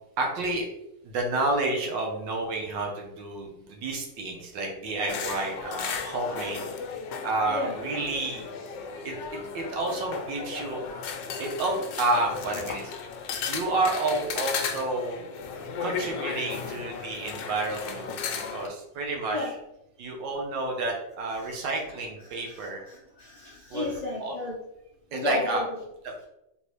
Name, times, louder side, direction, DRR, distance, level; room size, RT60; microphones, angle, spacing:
voice 1, 0.2-0.7 1.0-6.6 7.2-8.4 9.0-9.1 9.5-10.8 11.4-12.9 13.5-15.2 15.8-19.5 20.0-22.8 23.7-23.9 24.2-24.4 25.1-25.6 26.0-26.1, right 2 dB, 80° right, 1 dB, 1.6 m, -30 dB
sound 1, 5.1-18.7, left 6 dB, 85° left, 1.3 m, -35 dB
voice 2, 22.3-24.6 25.1-25.6, left 2 dB, 55° left, -5 dB, 0.4 m, -34 dB
4.0 x 3.6 x 3.0 m, 0.82 s
omnidirectional pair, 2.0 m